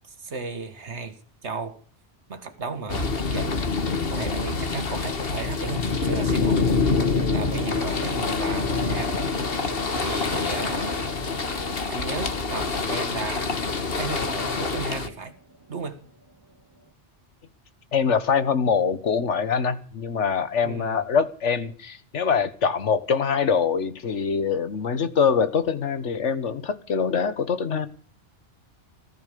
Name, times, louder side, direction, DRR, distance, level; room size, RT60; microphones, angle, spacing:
voice 1, 0.1-1.2 1.4-1.8 2.3-3.6 4.0-9.1 10.0-11.1 11.9-13.6 14.0-15.3 15.7-16.0 20.6-21.0, right 4 dB, 75° right, 2.1 m, -34 dB
sound 1, 2.4-3.0 5.5-16.9, right 2 dB, 20° right, 0.9 m, -42 dB
sound 2, 2.9-15.1, left 4 dB, 55° left, 1.6 m, -26 dB
voice 2, 17.9-27.9, left 6 dB, 85° left, 1.6 m, -24 dB
15.0 x 14.5 x 6.7 m
omnidirectional pair, 1.2 m